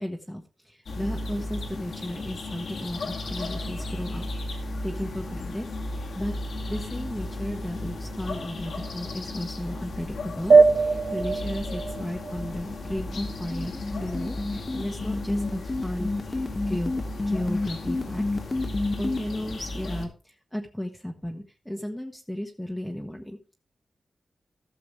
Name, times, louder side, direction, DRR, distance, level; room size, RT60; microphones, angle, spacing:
voice 1, 0.0-5.7 5.9-6.3 6.7-23.5, left 1 dB, 5° left, 2 dB, 1.0 m, -35 dB
sound 1, 0.9-20.1, left 2 dB, 80° left, 2.1 m, -35 dB
sound 2, 10.5-13.5, right 4 dB, 70° right, 0.8 m, -21 dB
sound 3, 12.9-19.2, left 2 dB, 30° left, 1.4 m, -29 dB
14.5 x 6.8 x 3.3 m, 0.34 s
wide cardioid pair, 110°, 0 cm